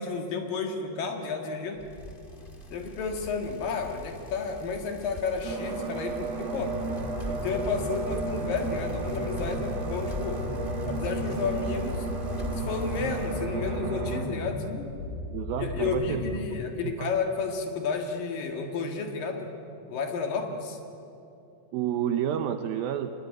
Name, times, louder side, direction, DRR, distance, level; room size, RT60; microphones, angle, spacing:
voice 1, 0.0-1.8 2.7-6.8 7.3-10.4 10.9-12.1 12.5-14.6 15.6-19.5 19.9-20.8, left 4 dB, 60° left, 4 dB, 3.3 m, -32 dB
Bicycle, 1.8-13.4, left 1 dB, 40° left, 0.7 m, -43 dB
sound 1, 5.4-14.2, right 3 dB, 45° right, 3.0 m, -34 dB
sound 2, 6.6-16.5, left 2 dB, 90° left, 5.8 m, -36 dB
voice 2, 15.3-16.4 16.8-17.1 21.7-23.1, right 10 dB, 75° right, 8 dB, 2.3 m, -30 dB
24.5 x 20.5 x 9.5 m, 2.7 s
omnidirectional pair, 4.8 m